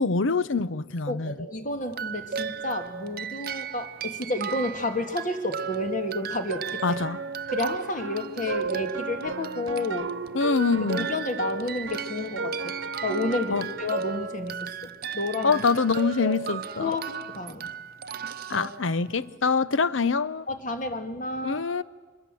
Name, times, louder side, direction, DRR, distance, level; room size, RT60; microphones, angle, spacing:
voice 1, 0.0-1.4 6.8-7.2 10.3-11.1 13.5-13.7 15.4-16.9 18.5-20.5 21.4-21.8, left 4 dB, 90° left, 0.8 m, -25 dB
voice 2, 1.1-7.0 7.5-10.1 10.9-15.6 16.2-17.7 18.5-18.7 20.5-21.6, left 2 dB, 40° left, 2.1 m, -31 dB
sound 1, 1.9-19.3, right 7 dB, 50° right, 0.7 m, -36 dB
sound 2, 6.5-14.2, right 3 dB, 80° right, 1.0 m, -35 dB
25.5 x 21.0 x 7.8 m
head